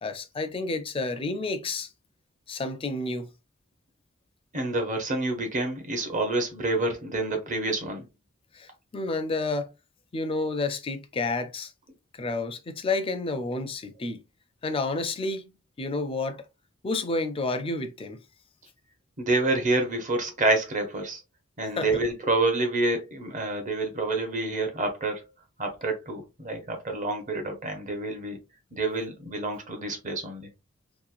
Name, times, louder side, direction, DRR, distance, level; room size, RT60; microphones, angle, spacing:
voice 1, 0.0-1.9 2.5-3.3 8.5-9.7 10.1-11.7 12.1-14.2 14.6-15.4 15.8-16.5 16.8-18.2 21.6-22.0, left 3 dB, 25° left, 0.4 m, -30 dB
voice 2, 4.5-8.0 19.2-21.2 21.6-25.2 25.6-28.4 28.7-30.5, right 2 dB, 40° right, 0.7 m, -28 dB
2.9 x 2.1 x 2.4 m
head